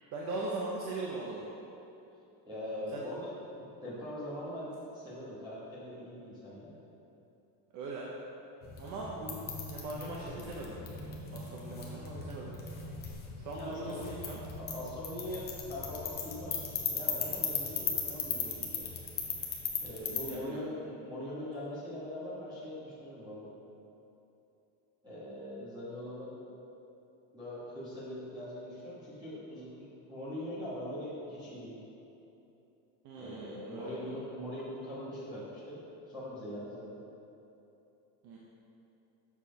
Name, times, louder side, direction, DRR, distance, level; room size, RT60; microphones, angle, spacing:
voice 1, 0.1-1.4 2.9-3.1 7.7-8.1 8.8-9.4 9.7-10.7 11.3-12.5 13.4-14.4 20.2-20.6 33.0-34.1 38.2-38.4, right 2 dB, 40° right, -4 dB, 0.7 m, -40 dB
voice 2, 2.4-3.3 3.8-6.8 13.6-14.0 14.6-18.8 19.8-23.5 25.0-26.4 27.3-31.8 33.1-35.8 36.1-36.9, left 1 dB, 10° right, -11 dB, 1.4 m, -42 dB
sound 1, 8.6-20.3, left 5 dB, 25° left, 0.6 m, -38 dB
7.1 x 4.3 x 5.1 m, 3.0 s
cardioid pair, 175°, 44 cm